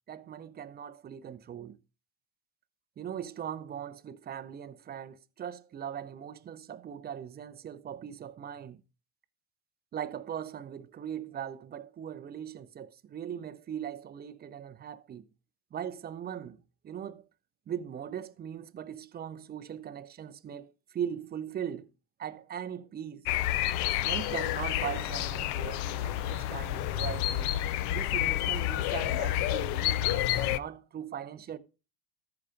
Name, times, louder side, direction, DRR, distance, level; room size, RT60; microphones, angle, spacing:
voice 1, 0.1-1.8 3.0-8.8 9.9-15.3 15.7-16.6 16.8-17.3 17.7-21.9 22.2-23.2 24.0-27.6 27.9-31.6, right 9 dB, 20° right, 0.5 m, -40 dB
sound 1, 23.3-30.6, left 13 dB, 55° left, 0.6 m, -29 dB
13.5 x 5.8 x 5.0 m
cardioid pair, 140°, 48 cm